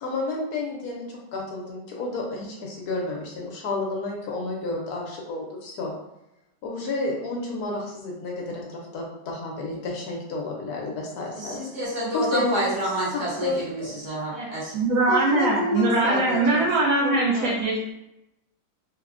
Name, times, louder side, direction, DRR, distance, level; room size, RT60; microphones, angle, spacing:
voice 1, 0.0-5.9 6.6-11.6 12.1-12.6 13.1-14.0 15.1-16.7 17.0-17.6, left 2 dB, 70° left, -2 dB, 1.1 m, -30 dB
voice 2, 11.3-14.6, right 1 dB, 55° right, -7 dB, 1.0 m, -28 dB
voice 3, 14.7-17.9, right 2 dB, 70° right, -5 dB, 0.9 m, -22 dB
3.4 x 2.1 x 2.4 m, 0.88 s
omnidirectional pair, 1.8 m